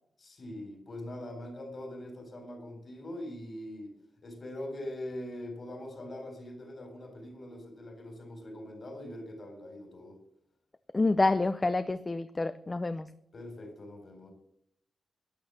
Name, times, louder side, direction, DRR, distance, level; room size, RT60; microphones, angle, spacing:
voice 1, 0.2-3.9 4.2-10.2 13.3-14.3, left 1 dB, 35° left, 5 dB, 4.3 m, -42 dB
voice 2, 10.9-13.1, left 2 dB, 20° left, 12 dB, 0.5 m, -28 dB
12.5 x 11.0 x 7.1 m, 0.71 s
wide cardioid pair, 170°, 0 cm